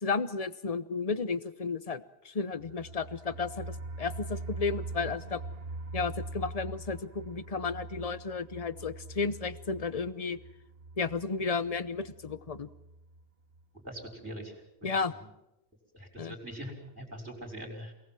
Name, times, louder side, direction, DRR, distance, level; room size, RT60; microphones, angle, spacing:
voice 1, 0.0-5.4 5.9-10.4 11.0-12.7 14.8-15.1 16.2-16.3, left 4 dB, 35° left, 14 dB, 1.0 m, -33 dB
sound 1, 2.5-13.2 13.5-13.6 14.0-14.1, right 3 dB, 65° right, 1.4 m, -43 dB
voice 2, 13.8-14.5 15.1-15.3 15.9-17.9, equal, 15° right, 0 dB, 5.2 m, -42 dB
27.5 x 19.0 x 7.6 m, 0.90 s
omnidirectional pair, 1.1 m